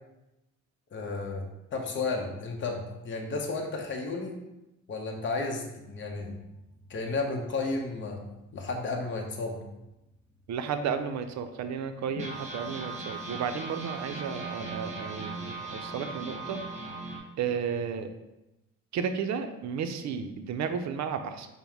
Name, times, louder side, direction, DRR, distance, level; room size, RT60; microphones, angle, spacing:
voice 1, 0.9-1.4 1.7-4.4 4.9-6.3 6.9-8.2 8.5-9.6, left 3 dB, 40° left, 1 dB, 0.8 m, -33 dB
sound 1, 6.1-9.3 9.8-9.9 10.1-10.3 10.9-11.0 12.1-17.2, right 3 dB, 20° right, 1.2 m, -39 dB
voice 2, 10.5-16.6 17.4-18.1 18.9-21.5, right 6 dB, 65° right, 8 dB, 0.5 m, -33 dB
5.4 x 2.1 x 4.5 m, 0.95 s
cardioid pair, 90°, 30 cm